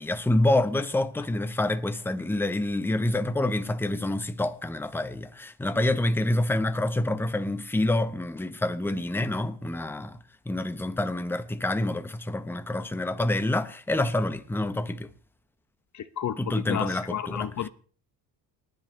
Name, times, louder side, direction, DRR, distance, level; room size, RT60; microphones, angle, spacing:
voice 1, 0.0-10.2 10.5-15.1 16.4-17.7, left 1 dB, 5° left, 0.8 m, -27 dB
voice 2, 15.9-17.7, left 10 dB, 40° left, 0.7 m, -32 dB
29.5 x 10.5 x 3.1 m
cardioid pair, 135°, 43 cm